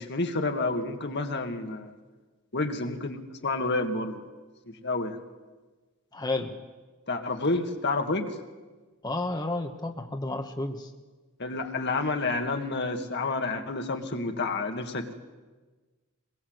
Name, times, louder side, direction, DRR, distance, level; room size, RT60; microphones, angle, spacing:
voice 1, 0.0-2.0 2.5-4.2 4.7-5.2 7.1-8.3 11.4-15.2, left 3 dB, 55° left, 5 dB, 2.0 m, -29 dB
voice 2, 6.1-6.5 9.0-10.9, left 2 dB, 20° left, 4 dB, 1.3 m, -31 dB
23.0 x 21.5 x 8.0 m, 1.3 s
head